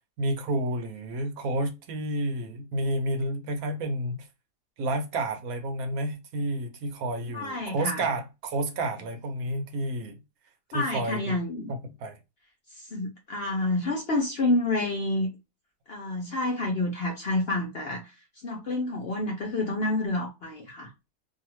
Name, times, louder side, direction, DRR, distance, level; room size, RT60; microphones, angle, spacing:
voice 1, 0.2-4.3 4.8-10.2 10.7-11.4 11.7-12.2, right 1 dB, 70° right, 1.1 m, -30 dB
voice 2, 7.3-8.0 10.7-11.7 12.7-15.3 15.9-20.9, left 2 dB, 60° left, 0.7 m, -29 dB
2.7 x 2.3 x 2.9 m
omnidirectional pair, 1.6 m